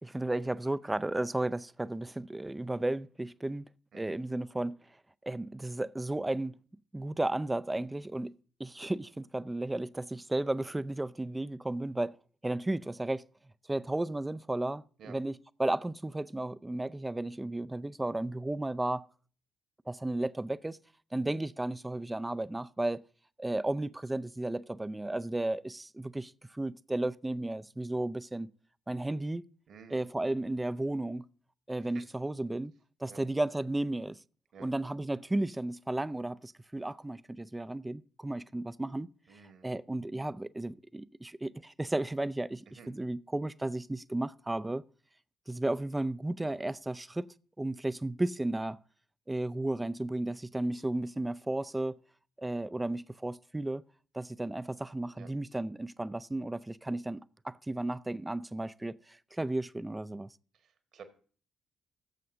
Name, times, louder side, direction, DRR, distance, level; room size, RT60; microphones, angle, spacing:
voice 1, 0.0-3.7 3.9-4.8 5.2-6.5 6.9-12.1 12.4-13.2 13.7-19.1 19.9-20.8 21.1-23.0 23.4-28.5 28.9-29.4 29.9-31.3 31.7-32.7 33.0-34.2 34.6-39.1 39.6-44.8 45.5-47.3 47.6-48.8 49.3-52.0 52.4-53.8 54.1-60.3, right 2 dB, 15° right, 0.4 m, -34 dB
voice 2, 29.7-30.0 31.8-32.0 33.0-33.2 34.5-34.7 39.3-39.7 42.7-42.9 55.1-55.3 60.5-61.0, right 6 dB, 55° right, 1.6 m, -52 dB
16.5 x 7.5 x 2.6 m
figure-of-eight pair, 40°, 0 cm